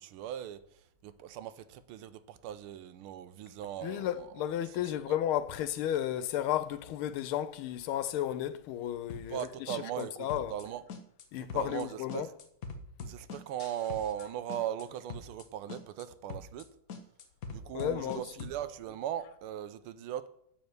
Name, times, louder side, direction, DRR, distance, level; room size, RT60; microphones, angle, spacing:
voice 1, 0.0-4.3 4.6-5.2 9.3-10.8 11.4-12.3 13.0-16.7 17.5-20.3, right 11 dB, 85° right, 1.5 m, -39 dB
voice 2, 3.8-10.6 11.3-12.3 17.7-18.5, left 11 dB, 80° left, 1.5 m, -33 dB
sound 1, 9.1-9.4 9.7-10.0 10.3-10.6 10.9-11.2 11.5-11.8 12.1-14.2 14.5-14.8 15.1-15.4 15.7-16.0 16.3-16.6 16.9-18.6, left 4 dB, 55° left, 1.1 m, -43 dB
11.5 x 4.4 x 8.1 m
omnidirectional pair, 2.4 m